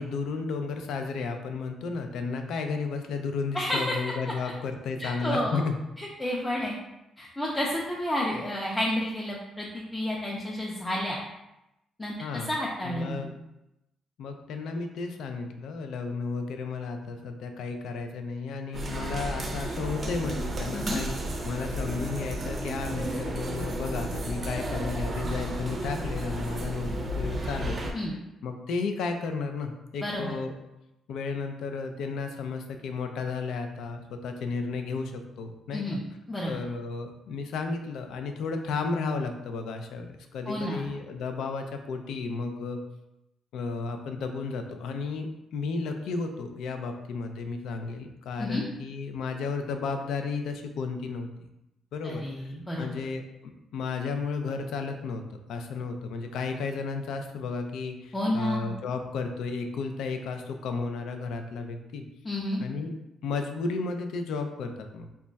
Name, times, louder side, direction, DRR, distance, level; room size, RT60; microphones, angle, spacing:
voice 1, 0.0-5.8 12.2-12.5 12.8-13.3 14.2-27.8 28.4-30.5 31.1-36.0 36.4-42.8 43.5-51.3 51.9-52.5 52.8-62.0 62.6-62.9 63.2-65.1, left 4 dB, 80° left, 5 dB, 0.3 m, -33 dB
voice 2, 3.5-4.0 5.0-5.6 6.0-6.8 7.2-11.2 12.0-12.2 12.5-13.3 20.7-21.0 27.9-28.1 30.0-30.4 35.7-36.0 36.3-36.6 40.5-41.0 48.4-48.6 52.0-53.0 58.1-58.7 62.2-62.6, left 1 dB, 10° left, -4 dB, 0.5 m, -30 dB
sound 1, 18.7-27.9, right 1 dB, 40° right, 0.5 m, -33 dB
2.2 x 2.2 x 3.8 m, 0.91 s
cardioid pair, 90°, 0 cm